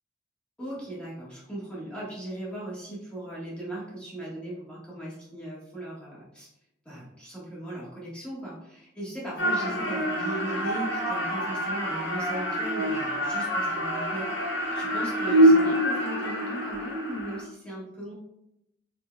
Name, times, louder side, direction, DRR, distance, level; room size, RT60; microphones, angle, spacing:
voice 1, 0.6-6.5 6.8-14.3 14.7-18.1, right 1 dB, 5° left, -8 dB, 1.4 m, -37 dB
sound 1, 9.4-17.4, equal, 60° left, 1.0 m, -25 dB
4.6 x 4.3 x 2.3 m, 0.85 s
head